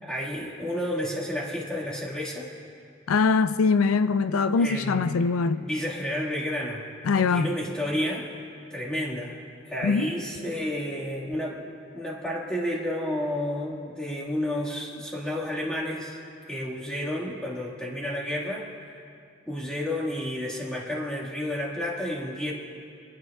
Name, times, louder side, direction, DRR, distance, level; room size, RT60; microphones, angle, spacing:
voice 1, 0.0-2.5 4.6-5.0 5.6-6.8 7.1-8.3 8.7-9.4 9.7-16.2 16.5-18.7 18.9-19.0 19.5-22.5, left 1 dB, 5° left, 1.8 m, -31 dB
voice 2, 3.1-5.6 7.0-7.5 9.8-10.1, left 4 dB, 85° left, 0.4 m, -22 dB
26.0 x 10.0 x 2.4 m
head